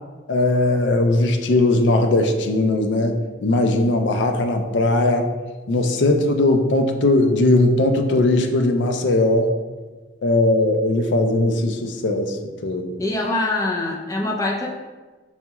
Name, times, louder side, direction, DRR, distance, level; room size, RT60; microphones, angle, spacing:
voice 1, 0.3-5.3 5.7-9.5 10.2-12.4 12.6-13.0, left 2 dB, 80° left, 5 dB, 0.4 m, -19 dB
voice 2, 13.0-14.7, left 2 dB, 20° left, -2 dB, 0.5 m, -23 dB
5.5 x 2.3 x 2.9 m, 1.3 s
head